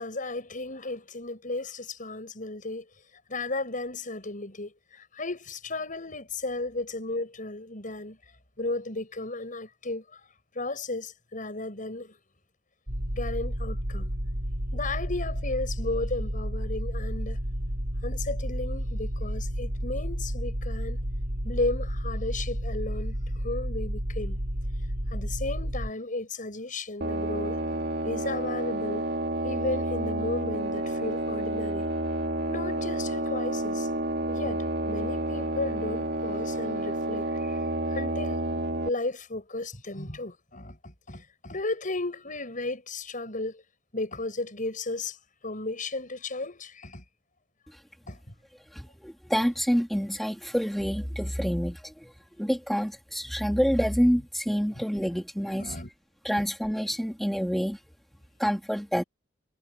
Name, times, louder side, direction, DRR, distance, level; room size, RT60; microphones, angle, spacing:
voice 1, 0.0-2.9 3.3-8.2 8.6-10.2 10.5-12.2 13.1-14.1 14.7-17.4 18.0-21.0 21.4-23.2 23.4-24.4 25.1-27.6 28.0-29.1 29.4-31.9 32.5-33.9 34.3-37.6 37.9-38.4 38.9-43.6 43.9-45.2 45.4-47.0 48.1-48.2 54.7-54.8 55.5-55.9 56.4-56.5, left 2 dB, 45° left, 7.6 m, -34 dB
sound 1, 12.9-25.9, equal, 75° right, 6.1 m, -31 dB
sound 2, 27.0-38.9, right 1 dB, 60° right, 3.1 m, -30 dB
voice 2, 48.7-52.1 52.4-55.8 56.2-57.8 58.4-59.0, equal, ahead, 2.7 m, -27 dB
head